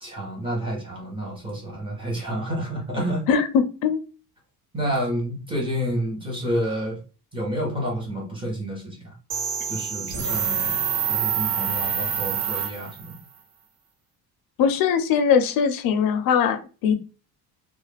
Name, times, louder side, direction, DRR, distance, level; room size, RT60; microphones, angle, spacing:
voice 1, 0.0-3.2 4.7-7.0 7.3-9.1 9.7-13.2, equal, 15° right, -2 dB, 0.8 m, -29 dB
voice 2, 3.3-4.0 14.6-16.9, left 7 dB, 70° left, 8 dB, 0.5 m, -21 dB
sound 1, 9.3-13.2, right 7 dB, 75° right, 0.8 m, -26 dB
2.3 x 2.1 x 3.2 m, 0.34 s
cardioid pair, 160°, 36 cm